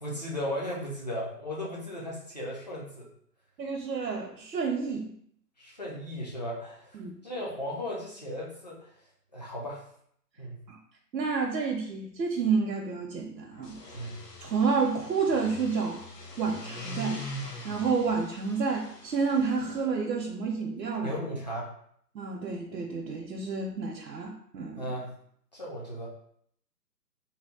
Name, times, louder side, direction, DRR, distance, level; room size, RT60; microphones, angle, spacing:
voice 1, 0.0-3.1 5.6-7.0 7.2-8.9 9.3-9.8 10.4-10.6 13.9-14.2 21.0-21.7 24.8-25.1 25.5-26.1, equal, 30° left, -5 dB, 0.3 m, -36 dB
voice 2, 3.6-5.1 7.0-7.1 10.7-10.8 11.1-13.7 14.4-16.0 16.4-17.2 17.6-21.2 22.1-24.9, right 5 dB, 80° right, 0 dB, 0.6 m, -29 dB
sound 1, 13.6-19.8, left 1 dB, 75° left, 0.8 m, -42 dB
2.7 x 2.1 x 3.6 m, 0.65 s
figure-of-eight pair, 130°, 49 cm